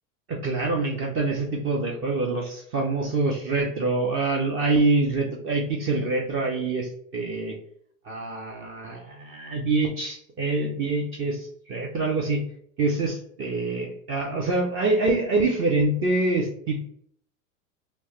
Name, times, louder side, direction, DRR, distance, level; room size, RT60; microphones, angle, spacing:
voice 1, 0.3-7.5 8.0-12.4 12.8-16.9, right 3 dB, 30° right, 1 dB, 0.5 m, -25 dB
3.0 x 2.1 x 2.9 m, 0.66 s
hypercardioid pair, 105°, 42 cm